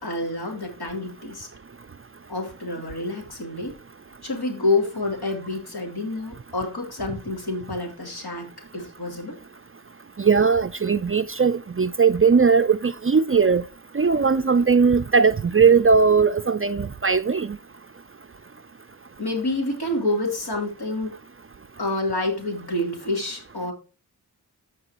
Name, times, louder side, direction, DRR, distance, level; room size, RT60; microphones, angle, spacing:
voice 1, 0.0-1.5 2.3-3.7 4.2-9.4 19.2-21.2 21.8-23.7, left 2 dB, 65° left, 3.1 m, -28 dB
voice 2, 10.2-13.6 13.9-17.6, right 5 dB, 35° right, 0.4 m, -19 dB
14.5 x 4.8 x 2.9 m
wide cardioid pair, 60°, 40 cm